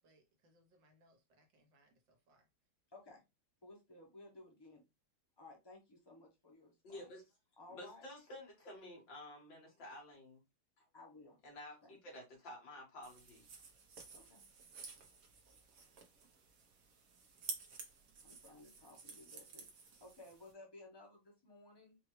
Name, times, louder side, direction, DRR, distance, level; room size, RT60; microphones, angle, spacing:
voice 1, 0.0-2.5, right 1 dB, 70° right, 1.8 m, -71 dB
voice 2, 2.9-3.2 3.6-4.8 5.4-7.1 7.6-8.0 10.9-11.4 11.8-12.0 14.1-14.5 18.2-22.0, left 2 dB, 45° left, 0.3 m, -57 dB
voice 3, 6.8-7.2 7.7-10.4 10.8-10.9 11.4-13.5, left 1 dB, 70° left, 2.5 m, -52 dB
sound 1, 13.0-20.5, right 5 dB, 55° right, 1.1 m, -52 dB
4.8 x 2.4 x 3.1 m
omnidirectional pair, 2.1 m